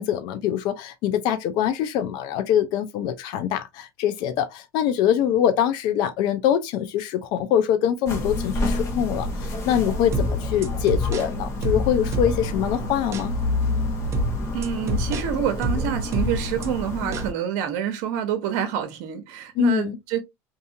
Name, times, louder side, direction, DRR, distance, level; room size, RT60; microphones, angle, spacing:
voice 1, 0.0-13.3 19.6-20.0, left 10 dB, 60° left, 0.5 m, -24 dB
sound 1, 8.1-17.3, left 2 dB, 35° left, 1.1 m, -28 dB
sound 2, 10.1-12.7 13.1-13.3 14.1-16.7 17.1-17.3, equal, 35° right, 0.6 m, -27 dB
voice 2, 14.4-20.2, right 9 dB, 70° right, 0.8 m, -27 dB
2.7 x 2.6 x 2.6 m
supercardioid pair, 125°, 8 cm